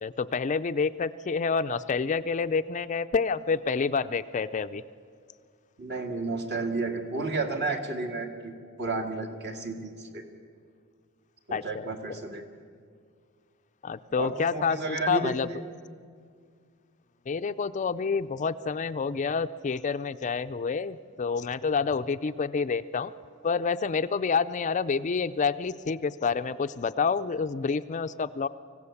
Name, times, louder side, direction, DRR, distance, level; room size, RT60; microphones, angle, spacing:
voice 1, 0.0-4.8 11.5-11.9 13.8-15.5 17.3-23.1 23.4-28.5, left 5 dB, 35° left, 11 dB, 0.4 m, -28 dB
voice 2, 5.8-10.2 11.5-12.4 14.2-15.3, right 3 dB, 50° right, 4 dB, 2.2 m, -32 dB
25.0 x 16.0 x 7.1 m, 2.1 s
head